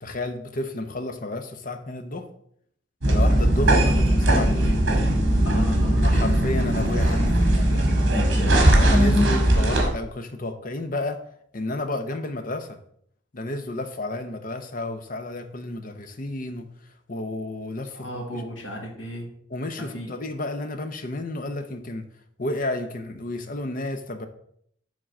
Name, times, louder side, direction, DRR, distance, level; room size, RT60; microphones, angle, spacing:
voice 1, 0.0-2.3 3.1-4.8 6.0-7.9 8.6-11.2 11.5-12.8 13.3-16.7 17.1-18.4 19.5-22.0 22.4-24.3, left 2 dB, 45° left, 7 dB, 0.8 m, -31 dB
sound 1, 3.0-9.9, right 1 dB, 70° right, 2.1 m, -19 dB
voice 2, 5.4-6.1 17.9-19.3 19.7-20.1, equal, 80° left, -1 dB, 1.6 m, -35 dB
7.4 x 3.8 x 6.1 m, 0.68 s
head